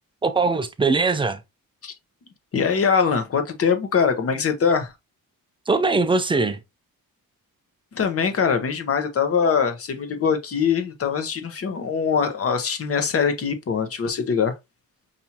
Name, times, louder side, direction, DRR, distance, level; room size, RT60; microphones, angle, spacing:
voice 1, 0.2-1.4 5.7-6.6, right 3 dB, 15° right, 0.4 m, -21 dB
voice 2, 2.5-4.9 7.9-14.5, left 6 dB, 40° left, 0.8 m, -22 dB
5.8 x 2.6 x 2.8 m
wide cardioid pair, 165°, 36 cm